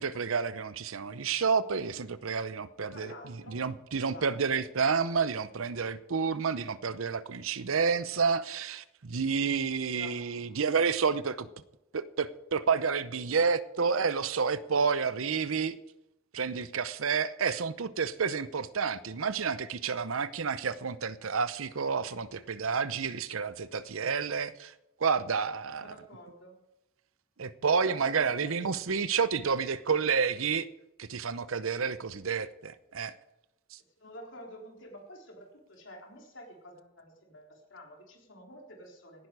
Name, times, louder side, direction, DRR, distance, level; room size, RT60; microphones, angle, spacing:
voice 1, 0.0-11.5 11.9-15.8 16.3-24.7 25.0-25.9 27.4-30.7 31.0-33.1 33.7-33.8, right 5 dB, 80° right, 15 dB, 0.7 m, -30 dB
voice 2, 2.9-3.6 4.0-4.6 9.9-10.5 25.7-26.6 27.8-28.9 34.0-39.3, equal, 65° left, 0 dB, 3.9 m, -49 dB
17.0 x 10.5 x 4.8 m, 0.90 s
head